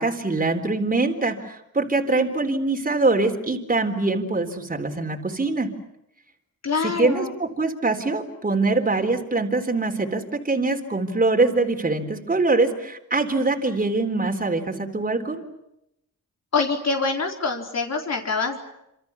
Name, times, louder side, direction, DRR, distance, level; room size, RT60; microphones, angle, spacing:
voice 1, 0.0-5.7 6.8-15.4, right 3 dB, 25° right, 4 dB, 3.9 m, -23 dB
voice 2, 6.6-7.3 16.5-18.6, left 4 dB, 50° left, 2 dB, 4.3 m, -25 dB
28.0 x 27.0 x 7.2 m, 0.83 s
cardioid pair, 95°, 33 cm